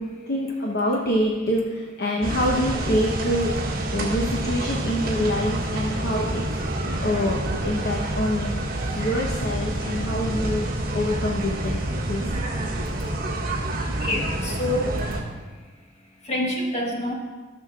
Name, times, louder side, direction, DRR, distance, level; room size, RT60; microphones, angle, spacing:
voice 1, 0.3-3.5 3.9-6.4 7.0-8.5 9.0-10.6 10.9-11.8 12.1-12.2, equal, 55° left, -1 dB, 1.0 m, -25 dB
sound 1, 2.2-15.2, right 1 dB, 50° right, 1.8 m, -28 dB
voice 2, 13.9-14.9 16.2-17.1, left 1 dB, 35° left, -1 dB, 1.5 m, -26 dB
17.0 x 6.4 x 2.4 m, 1.4 s
head